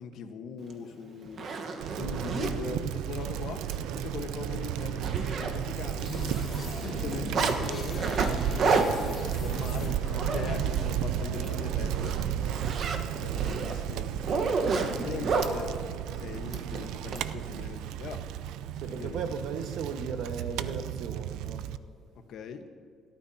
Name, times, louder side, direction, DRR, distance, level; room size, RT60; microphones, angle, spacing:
voice 1, 0.0-1.5 1.9-3.6 3.9-6.3 6.8-12.6 13.1-15.7 16.1-18.3 18.9-19.2 22.1-22.6, left 6 dB, 55° left, 1.2 m, -41 dB
Zipper (clothing), 0.7-0.8 1.2-2.5 3.1-3.3 3.6-3.8 4.1-4.2 4.6-5.9 6.1-7.6 8.0-10.9 11.3-11.5 11.9-15.5 16.5-17.2, right 4 dB, 40° right, 1.3 m, -30 dB
Bicycle, 1.8-21.8, right 10 dB, 85° right, 0.5 m, -33 dB
sound 1, 6.0-12.1, left 2 dB, 10° left, 5.0 m, -40 dB
voice 2, 18.7-21.7, right 5 dB, 60° right, 1.4 m, -36 dB
29.5 x 13.0 x 2.8 m
cardioid pair, 165°, 0 cm